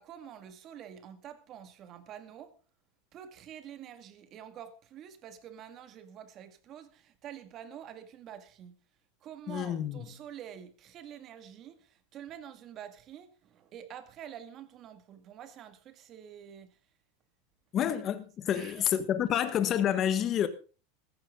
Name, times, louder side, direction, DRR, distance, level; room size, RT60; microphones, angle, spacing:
voice 1, 0.0-2.6 3.1-8.8 9.2-16.8 18.5-19.0 19.3-19.4, right 9 dB, 35° right, 2.0 m, -47 dB
voice 2, 9.5-10.1 17.7-20.5, left 10 dB, 35° left, 1.4 m, -29 dB
15.0 x 14.5 x 3.8 m
supercardioid pair, 140°, 0 cm